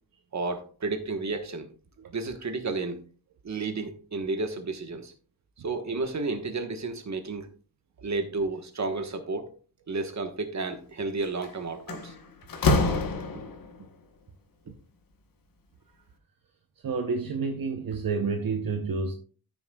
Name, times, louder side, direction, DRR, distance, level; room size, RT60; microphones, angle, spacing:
voice 1, 0.3-1.7 2.1-3.0 3.4-5.1 5.6-7.5 8.0-9.5 9.9-12.1 13.3-13.4 14.7-14.8, right 3 dB, 45° right, 1.3 m, -32 dB
Slam, 11.2-11.5 11.9-13.8, left 3 dB, 60° left, 1.1 m, -26 dB
voice 2, 16.8-19.1, right 4 dB, 60° right, 0.9 m, -29 dB
13.5 x 6.3 x 2.3 m
wide cardioid pair, 145°, 39 cm